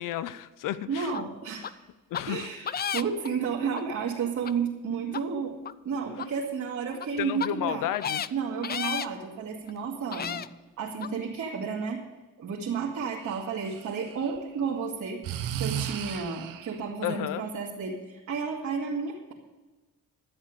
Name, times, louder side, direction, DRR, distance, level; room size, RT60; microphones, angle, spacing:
voice 1, 0.0-1.3 2.1-2.5 7.2-8.3 17.0-17.5, left 12 dB, 80° left, 16 dB, 0.7 m, -32 dB
voice 2, 0.9-1.8 2.3-5.5 5.8-7.9 8.3-10.4 10.8-12.0 12.4-15.2 15.5-19.3, right 6 dB, 65° right, -6 dB, 2.4 m, -32 dB
sound 1, 1.1-1.2 1.6-1.7 2.1-2.2 2.7-3.3 3.8-3.9 4.5-4.6 5.1-5.2 5.7-5.8 6.2-6.3 6.9-7.1 7.4-7.5 7.9-8.3 8.6-9.1 9.7-9.8 10.1-10.5 11.0-11.1, left 8 dB, 30° left, 0.4 m, -32 dB
Breathing, 13.2-14.4 15.2-16.8, right 10 dB, 80° right, 0.9 m, -34 dB
13.0 x 8.1 x 6.7 m, 1.2 s
cardioid pair, 100°, 32 cm